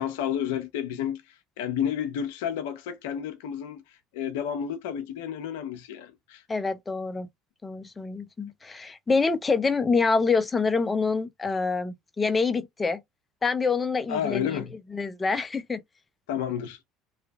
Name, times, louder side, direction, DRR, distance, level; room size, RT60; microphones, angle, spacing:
voice 1, 0.0-6.4 14.1-14.7 16.3-16.8, left 9 dB, 75° left, 0.5 m, -31 dB
voice 2, 6.5-7.3 7.6-13.0 13.4-14.6 14.9-15.8, left 4 dB, 25° left, 0.5 m, -26 dB
2.7 x 2.4 x 2.2 m
hypercardioid pair, 70°, 0 cm